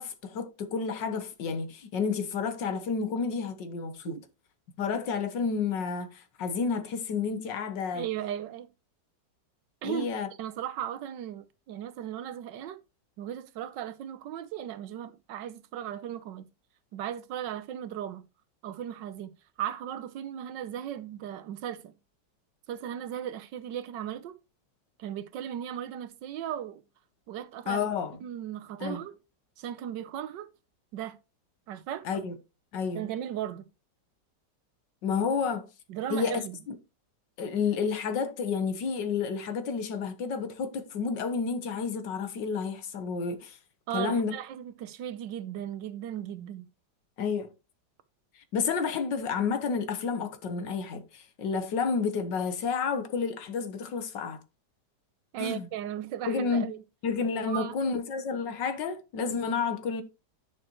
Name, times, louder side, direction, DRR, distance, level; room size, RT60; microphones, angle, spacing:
voice 1, 0.0-4.1 4.8-8.1 9.8-10.3 27.7-28.2 28.8-29.0 32.1-32.3 32.7-33.1 35.0-35.7 36.1-36.4 36.7-36.8 37.4-43.6 43.9-44.3 47.2-47.5 48.5-54.4 55.4-55.7 56.3-56.7 57.0-60.0, left 5 dB, 85° left, 1.8 m, -30 dB
voice 2, 7.9-8.7 9.8-10.1 10.4-12.8 13.2-16.5 16.9-18.2 18.6-19.3 19.6-21.9 22.7-24.4 25.0-26.8 27.3-27.8 28.2-29.2 29.6-30.5 30.9-31.2 31.7-32.1 32.9-33.7 35.9-36.6 43.9-46.7 55.3-56.8 57.4-57.8, right 10 dB, 80° right, 1.4 m, -36 dB
10.0 x 6.6 x 3.0 m
omnidirectional pair, 1.9 m